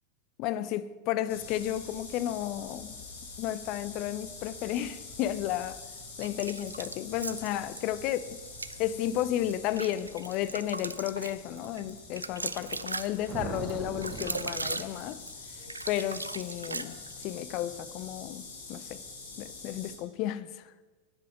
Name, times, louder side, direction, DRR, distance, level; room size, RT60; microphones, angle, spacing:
voice 1, 0.4-2.9 3.4-5.8 6.2-8.4 8.8-15.2 15.8-19.0 19.4-20.8, left 12 dB, 40° left, 0.5 m, -33 dB
sound 1, 1.3-19.9, left 3 dB, 65° left, 3.6 m, -46 dB
sound 2, 6.2-7.8 8.5-8.8 9.3-17.3, right 3 dB, 80° right, 0.4 m, -38 dB
sound 3, 13.3-15.6, right 5 dB, 30° right, 0.9 m, -41 dB
10.0 x 7.6 x 7.4 m
figure-of-eight pair, 90°, 0 cm